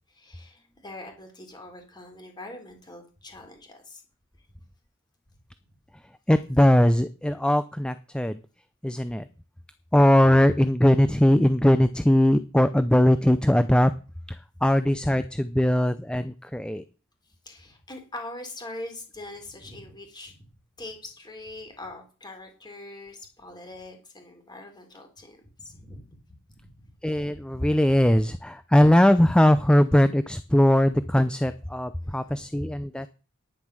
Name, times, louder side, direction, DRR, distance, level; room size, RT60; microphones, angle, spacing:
voice 1, 0.1-4.0 15.5-15.6 17.4-20.4 20.8-26.2 26.7-26.8 32.0-32.6, left 2 dB, 20° left, 4 dB, 3.9 m, -43 dB
voice 2, 6.3-8.4 8.8-9.3 9.9-13.9 14.3-16.8 27.0-33.1, left 1 dB, 5° left, 12 dB, 0.5 m, -20 dB
10.5 x 10.0 x 6.3 m, 0.36 s
head